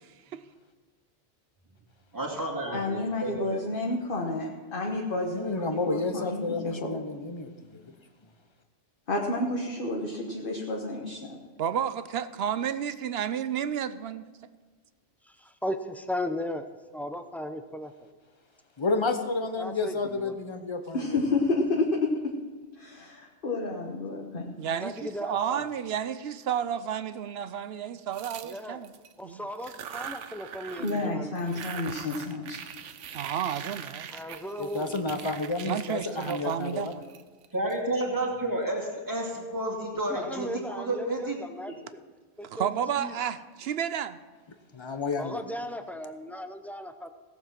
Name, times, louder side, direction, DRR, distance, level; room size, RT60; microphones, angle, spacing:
voice 1, 2.1-3.6 37.5-41.4 41.7-41.8, right 1 dB, 15° right, -1 dB, 2.3 m, -31 dB
voice 2, 2.7-6.9 9.1-11.2 20.9-22.3 22.8-24.6 30.8-32.7, left 2 dB, 50° left, -1 dB, 1.4 m, -30 dB
voice 3, 5.3-7.9 18.8-21.2 34.6-37.0 44.7-45.4, left 3 dB, 25° left, 8 dB, 0.8 m, -31 dB
voice 4, 11.6-14.3 24.6-28.9 29.2-29.5 33.1-34.2 35.6-37.0 42.4-44.2, right 9 dB, 65° right, 13 dB, 0.8 m, -31 dB
voice 5, 15.6-16.6 16.9-18.1 19.6-20.4 24.7-25.7 28.4-28.8 29.2-31.4 31.7-31.8 34.1-34.9 40.1-42.0 42.4-42.7 43.0-43.1 45.2-47.1, left 1 dB, ahead, 8 dB, 0.4 m, -36 dB
sound 1, 28.1-29.1 29.5-31.1 31.3-37.7, right 8 dB, 85° right, 1.0 m, -42 dB
17.0 x 7.3 x 5.9 m, 1.5 s
omnidirectional pair, 1.2 m